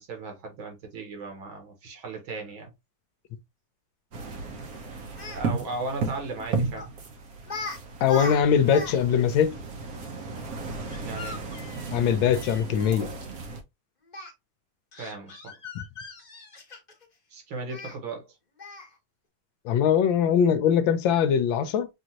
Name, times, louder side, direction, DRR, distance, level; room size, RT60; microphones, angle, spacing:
voice 1, 0.0-2.7 5.3-6.9 11.0-11.4 15.0-15.6 17.3-18.4, right 3 dB, 75° right, 2.2 m, -36 dB
sound 1, 4.1-13.6, right 4 dB, 55° right, 1.1 m, -35 dB
Speech, 5.2-5.4 6.8-7.0 7.4-9.0 9.2-9.3 10.9-13.0 14.1-14.3 14.9-17.1 17.7-18.0 18.6-18.9, left 2 dB, 30° left, 1.0 m, -38 dB
voice 2, 8.0-9.6 11.9-13.1 15.7-15.8 19.6-21.9, left 8 dB, 75° left, 1.3 m, -22 dB
6.1 x 2.6 x 2.9 m
omnidirectional pair, 2.2 m